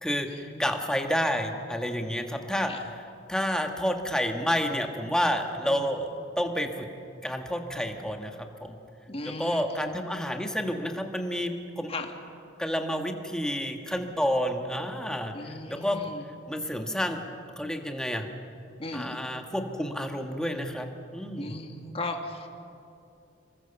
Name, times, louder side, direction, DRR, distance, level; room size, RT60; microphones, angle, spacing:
voice 1, 0.0-6.9 7.2-8.8 9.2-11.9 12.6-15.3 15.7-16.0 16.5-17.2 17.6-18.3 18.9-20.9 21.1-21.6, equal, 5° left, 4 dB, 1.6 m, -30 dB
voice 2, 9.1-9.9 11.9-12.1 15.3-16.3 18.8-19.2 21.4-22.5, left 2 dB, 30° left, 3 dB, 2.0 m, -37 dB
26.5 x 22.0 x 7.1 m, 2.6 s
head